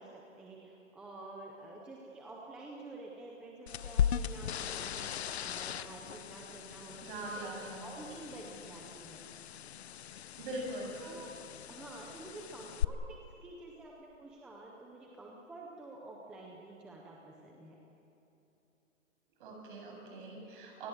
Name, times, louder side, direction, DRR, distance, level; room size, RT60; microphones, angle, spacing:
voice 1, 0.0-7.5 7.8-9.2 11.0-11.4 11.7-17.8, right 2 dB, ahead, -2 dB, 0.6 m, -49 dB
sound 1, 3.7-12.8, left 9 dB, 55° left, 0.8 m, -38 dB
voice 2, 7.0-7.8 10.4-11.1 19.4-20.9, right 1 dB, 40° right, 1 dB, 7.7 m, -42 dB
28.0 x 19.5 x 7.9 m, 2.9 s
hypercardioid pair, 160°, 39 cm